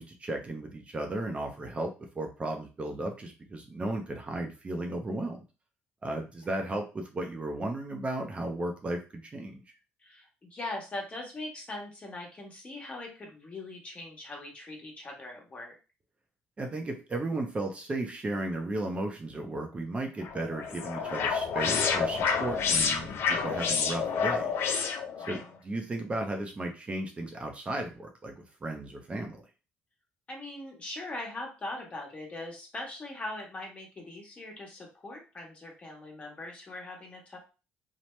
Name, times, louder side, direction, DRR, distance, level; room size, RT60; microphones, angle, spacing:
voice 1, 0.0-1.9 2.1-5.4 6.0-9.6 16.6-24.5 25.3-29.4, right 2 dB, 30° right, 3 dB, 0.6 m, -35 dB
voice 2, 10.0-15.8 25.2-25.4 30.3-37.4, left 2 dB, 30° left, 0 dB, 1.2 m, -41 dB
sound 1, 20.2-25.4, left 6 dB, 65° left, 0.5 m, -29 dB
2.9 x 2.1 x 3.1 m, 0.32 s
supercardioid pair, 85°, 4 cm